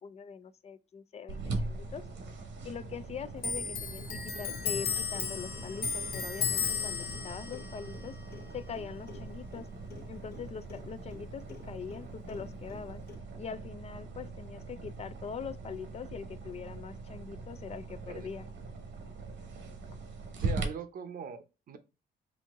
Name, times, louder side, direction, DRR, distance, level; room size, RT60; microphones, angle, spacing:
voice 1, 0.0-2.0 2.6-8.2 8.5-9.7 10.1-13.0 13.4-18.5, left 6 dB, 35° left, 0.4 m, -42 dB
sound 1, 1.3-20.6, right 3 dB, 90° right, 1.2 m, -41 dB
Clock, 3.4-10.4 10.7-12.0 12.3-13.1, left 6 dB, 55° left, 0.8 m, -36 dB
voice 2, 20.4-21.8, right 7 dB, 50° right, 0.7 m, -41 dB
4.2 x 2.7 x 3.5 m
cardioid pair, 145°, 19 cm